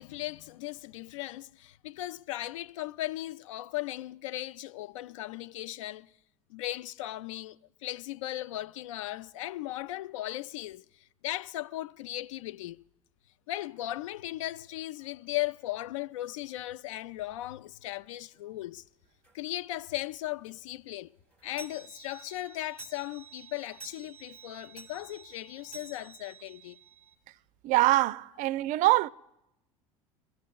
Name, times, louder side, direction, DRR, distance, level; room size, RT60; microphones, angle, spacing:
voice 1, 0.0-6.1 6.5-10.9 11.2-12.8 13.5-18.8 19.3-21.1 21.4-26.8, left 15 dB, 70° left, 0.4 m, -37 dB
sound 1, 19.2-19.4 19.9-20.0 20.3-20.4 20.7-27.2, right 5 dB, 10° left, 2.9 m, -51 dB
voice 2, 27.6-29.1, right 17 dB, 50° right, 0.4 m, -24 dB
25.0 x 14.5 x 2.3 m
figure-of-eight pair, 70°, 17 cm